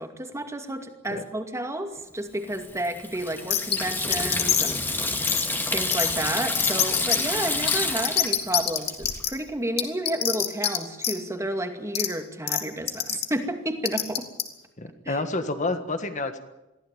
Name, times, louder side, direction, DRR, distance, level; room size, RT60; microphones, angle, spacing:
voice 1, 0.0-5.4 5.7-14.3 15.1-15.2, right 1 dB, 15° right, 6 dB, 2.3 m, -31 dB
Water tap faucet / Sink (filling or washing), 2.5-9.2, left 2 dB, 10° left, 2.1 m, -29 dB
sound 1, 3.5-3.8 4.1-4.8 5.3-5.4 5.9-6.1 6.5-7.2 7.7-7.8 8.0-9.3 9.8-10.8 11.0-11.1 11.9-12.1 12.5-12.6 12.9-13.2 13.8-14.4, left 11 dB, 55° left, 2.6 m, -24 dB
voice 2, 14.8-16.4, left 2 dB, 40° left, 8 dB, 1.6 m, -29 dB
23.0 x 15.5 x 9.1 m, 1.0 s
head